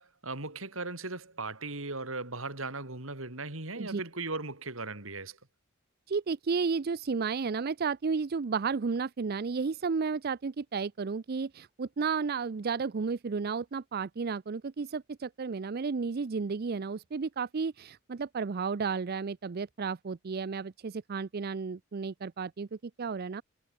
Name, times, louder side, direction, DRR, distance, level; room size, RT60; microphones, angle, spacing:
voice 1, 0.0-5.4, right 3 dB, 70° right, 4.4 m, -38 dB
voice 2, 6.1-23.4, right 5 dB, 50° right, 0.5 m, -32 dB
head